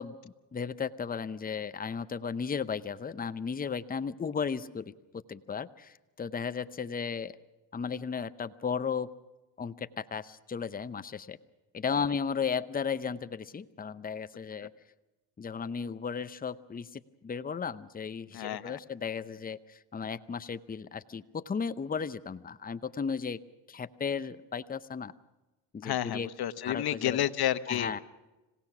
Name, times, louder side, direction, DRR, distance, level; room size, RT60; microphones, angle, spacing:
voice 1, 0.0-7.3 7.7-9.1 9.6-11.4 11.7-14.7 15.4-23.4 23.7-25.1 25.7-26.3 26.6-27.3 27.7-28.0, left 6 dB, 20° left, 13 dB, 0.7 m, -35 dB
voice 2, 18.3-18.8 25.8-27.9, left 12 dB, 50° left, 12 dB, 1.1 m, -30 dB
26.5 x 17.0 x 6.1 m, 1.1 s
supercardioid pair, 80°, 47 cm